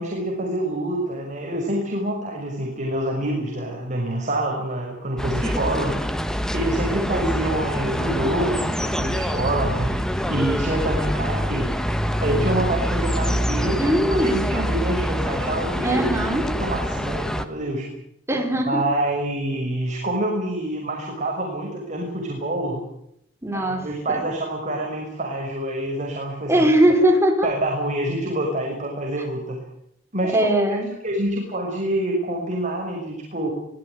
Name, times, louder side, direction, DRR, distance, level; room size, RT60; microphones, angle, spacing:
voice 1, 0.0-6.0 6.5-10.0 10.3-11.7 12.2-17.8 18.6-22.8 23.5-26.6 27.4-29.6 30.1-30.3 30.7-30.8 31.0-33.5, right 1 dB, 40° right, 0 dB, 6.0 m, -26 dB
sound 1, 5.2-17.5, equal, 5° left, 1.7 m, -25 dB
voice 2, 13.8-14.5 15.8-16.5 18.3-18.8 23.4-23.8 26.5-27.5 30.3-30.9, right 1 dB, 15° right, 4 dB, 4.8 m, -20 dB
25.0 x 18.0 x 9.4 m, 0.77 s
head